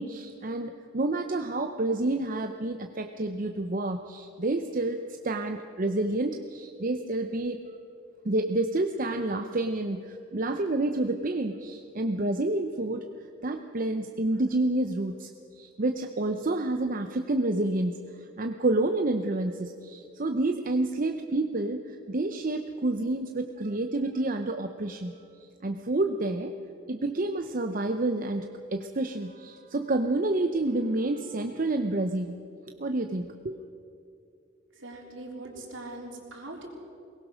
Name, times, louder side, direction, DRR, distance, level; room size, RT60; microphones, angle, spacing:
voice 1, 0.0-5.0 5.2-7.6 8.2-13.0 13.4-15.3 15.6-18.0 18.4-25.1 25.6-26.5 26.9-32.4 32.7-33.6, right 2 dB, 45° right, 6 dB, 0.7 m, -29 dB
voice 2, 34.7-36.7, right 2 dB, 70° right, 1 dB, 3.5 m, -41 dB
21.5 x 19.0 x 6.3 m, 2.6 s
head